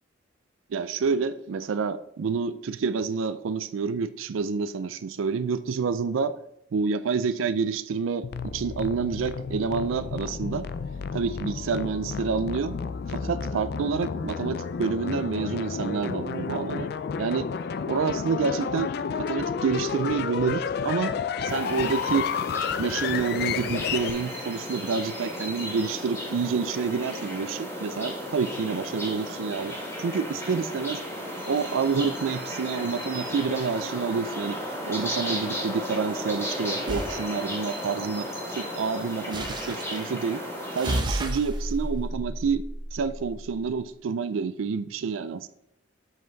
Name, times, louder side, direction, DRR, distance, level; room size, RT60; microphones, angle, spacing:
voice 1, 0.7-6.4 6.7-10.7 11.1-12.8 13.1-16.9 17.2-17.5 17.9-18.9 19.2-21.1 21.4-22.3 22.8-31.0 31.5-34.6 34.9-38.3 38.5-40.4 40.7-42.6 42.9-45.5, right 5 dB, 85° right, 12 dB, 0.4 m, -28 dB
sound 1, 8.2-24.1, left 6 dB, 55° left, 0.4 m, -31 dB
sound 2, 21.5-41.0, equal, 15° left, 2.1 m, -34 dB
sound 3, 36.9-37.2 39.3-40.0 40.8-43.4, right 1 dB, 25° right, 0.8 m, -31 dB
7.6 x 5.2 x 3.9 m, 0.80 s
head